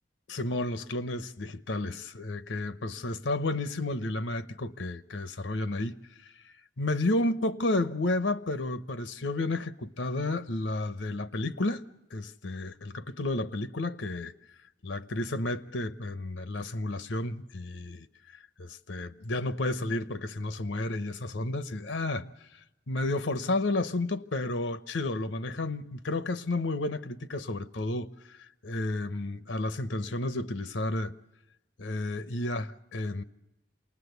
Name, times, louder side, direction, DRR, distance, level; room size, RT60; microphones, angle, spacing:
voice 1, 0.3-6.0 6.8-11.8 12.1-14.3 14.8-18.1 18.6-22.3 22.9-31.1 31.8-33.2, left 2 dB, 85° left, 0.9 m, -31 dB
28.0 x 20.0 x 8.1 m
head